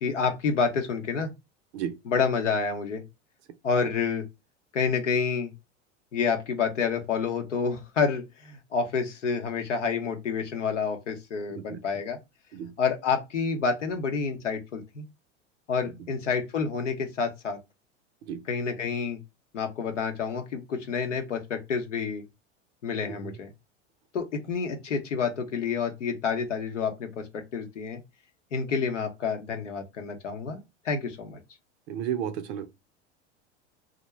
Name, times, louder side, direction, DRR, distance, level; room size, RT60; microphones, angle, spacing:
voice 1, 0.0-1.3 2.1-3.0 3.6-4.2 4.7-5.5 6.1-12.2 12.8-15.0 15.7-17.6 18.5-19.2 19.5-22.2 22.8-23.5 24.1-28.0 28.5-30.6 30.8-31.4, left 5 dB, 85° left, 0.7 m, -28 dB
voice 2, 31.9-32.7, right 9 dB, 60° right, 0.5 m, -33 dB
2.4 x 2.1 x 2.9 m
hypercardioid pair, 85°, 36 cm